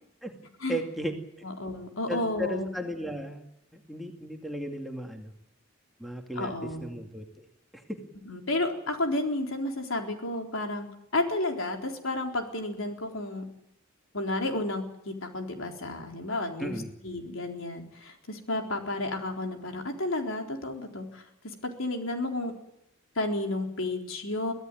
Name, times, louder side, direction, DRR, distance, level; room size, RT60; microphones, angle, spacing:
voice 1, 0.7-1.1 2.1-3.4 3.7-5.3 6.0-6.5 6.8-7.2 7.9-8.0 16.6-16.9, equal, ahead, 2 dB, 2.4 m, -35 dB
voice 2, 1.4-2.7 6.3-6.9 8.3-13.4 14.1-16.7 17.0-22.5 23.2-24.5, left 2 dB, 75° left, 3 dB, 4.0 m, -32 dB
24.5 x 16.5 x 9.2 m, 0.80 s
head